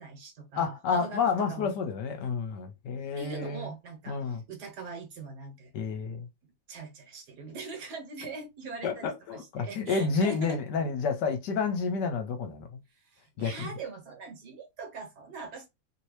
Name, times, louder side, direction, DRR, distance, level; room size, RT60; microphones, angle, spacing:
voice 1, 0.0-1.2 1.5-1.7 3.2-5.7 6.7-10.6 13.0-15.7, right 4 dB, 60° right, 1.4 m, -42 dB
voice 2, 0.5-3.7 4.1-4.4 5.7-6.3 8.8-12.7 13.4-13.7, left 5 dB, 70° left, 1.2 m, -30 dB
3.0 x 2.8 x 3.1 m
omnidirectional pair, 2.1 m